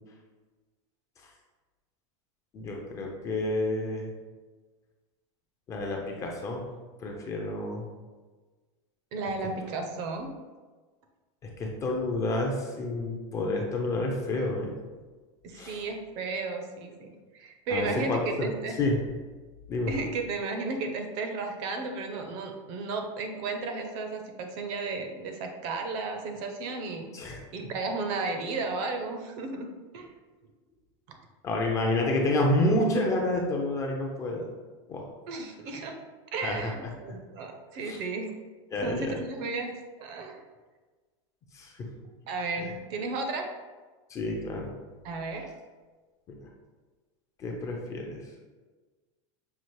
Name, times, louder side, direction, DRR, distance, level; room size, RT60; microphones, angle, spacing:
voice 1, 2.5-4.1 5.7-6.6 7.0-7.8 11.6-14.7 15.5-15.8 17.7-18.5 18.8-19.0 19.7-19.9 27.1-27.4 31.4-34.5 34.9-35.0 36.4-36.7 37.8-38.0 38.7-39.2 41.5-41.9 44.1-44.7 47.4-48.2, left 1 dB, 20° left, 0 dB, 0.4 m, -29 dB
voice 2, 9.1-10.3 15.4-17.1 17.3-18.7 19.9-27.1 27.5-29.7 29.9-30.1 31.1-31.2 35.3-35.9 36.3-38.3 38.8-39.7 40.0-40.4 42.3-43.5 45.0-45.5, right 3 dB, 40° right, 4 dB, 0.5 m, -34 dB
5.7 x 2.4 x 3.1 m, 1.3 s
supercardioid pair, 160°, 16 cm